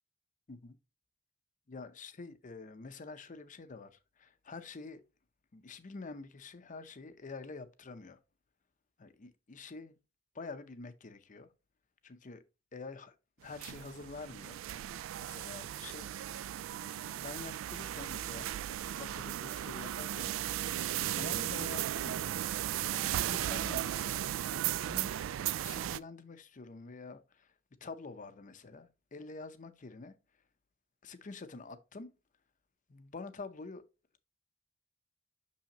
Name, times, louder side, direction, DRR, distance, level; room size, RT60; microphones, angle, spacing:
voice 1, 1.7-5.0 5.5-8.2 9.0-10.0 10.3-11.5 12.0-12.4 12.7-13.2 13.4-14.6 15.2-16.1 16.8-20.6 21.1-22.3 22.9-25.1 25.6-27.5 27.8-30.1 31.0-32.1 32.9-33.8, left 4 dB, 40° left, 0.6 m, -47 dB
sound 1, 13.4-26.0, right 12 dB, 80° right, 0.3 m, -36 dB
6.2 x 5.6 x 2.9 m
head